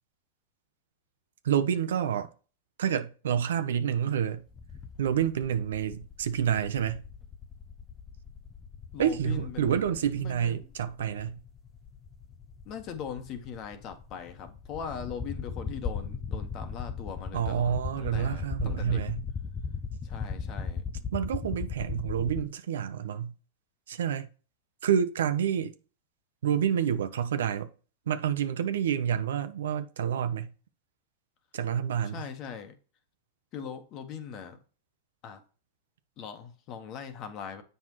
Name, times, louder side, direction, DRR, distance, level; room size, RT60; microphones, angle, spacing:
voice 1, 1.4-2.3 2.8-4.4 5.0-7.0 9.0-11.4 17.3-19.2 21.1-23.3 23.9-24.3 24.8-25.7 26.4-27.7 28.1-30.5 31.5-32.2, right 9 dB, 80° right, 0.8 m, -28 dB
sound 1, 4.5-22.4, left 5 dB, 20° left, 0.5 m, -38 dB
voice 2, 8.9-10.6 12.6-19.0 20.0-20.8 32.0-32.7 33.5-34.6 35.2-35.4 36.2-37.6, left 7 dB, 40° left, 1.4 m, -40 dB
7.7 x 5.7 x 3.1 m
hypercardioid pair, 125°, 0 cm